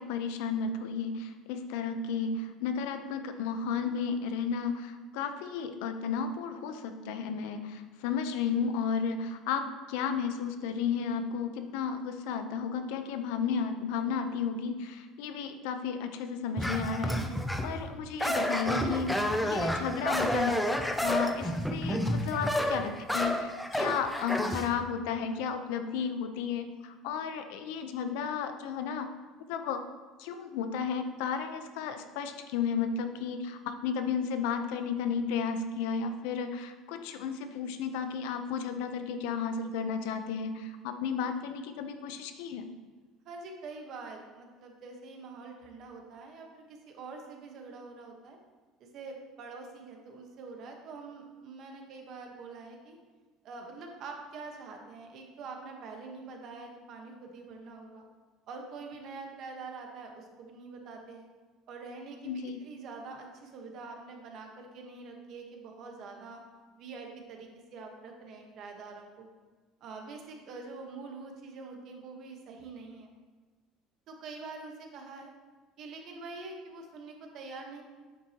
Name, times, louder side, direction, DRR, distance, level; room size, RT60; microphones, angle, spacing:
voice 1, 0.0-17.2 17.6-20.6 21.0-29.1 29.5-29.8 30.2-42.7 62.2-62.6, left 6 dB, 80° left, 8 dB, 0.7 m, -33 dB
sound 1, 16.6-17.8 18.2-24.7, equal, 5° left, 0.5 m, -30 dB
voice 2, 43.2-48.4 48.8-53.0 53.4-58.0 58.5-61.3 61.7-66.4 66.8-69.3 69.8-73.1 74.1-75.3 75.8-77.8, right 4 dB, 40° right, 2 dB, 1.2 m, -45 dB
9.1 x 7.4 x 3.0 m, 1.3 s
cardioid pair, 175°, 0 cm